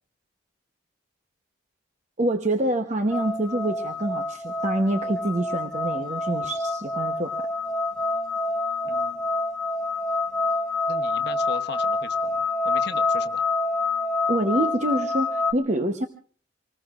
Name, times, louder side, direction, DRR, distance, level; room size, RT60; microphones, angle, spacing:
voice 1, 2.2-7.4 14.3-16.1, right 1 dB, 35° right, 5 dB, 0.9 m, -26 dB
sound 1, 3.1-15.5, left 3 dB, 5° left, 0.8 m, -27 dB
voice 2, 8.8-9.3 10.9-13.4, left 4 dB, 55° left, 7 dB, 1.0 m, -38 dB
26.5 x 20.0 x 2.5 m, 0.42 s
head